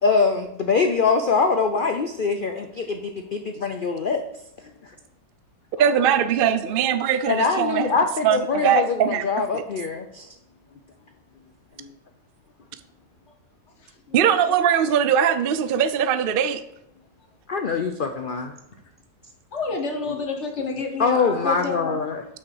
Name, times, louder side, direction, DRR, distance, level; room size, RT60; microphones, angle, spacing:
voice 1, 0.0-5.0 7.3-10.3 11.8-11.9 17.5-18.6 20.1-20.2 21.0-22.2, left 4 dB, 70° left, 6 dB, 0.4 m, -24 dB
voice 2, 5.8-7.9 8.2-9.2 9.5-9.6 14.1-16.6, right 8 dB, 85° right, 12 dB, 0.5 m, -21 dB
voice 3, 6.4-6.8 14.1-14.6 19.5-22.0, left 4 dB, 50° left, 3 dB, 1.4 m, -30 dB
6.5 x 6.0 x 6.4 m, 0.82 s
omnidirectional pair, 1.7 m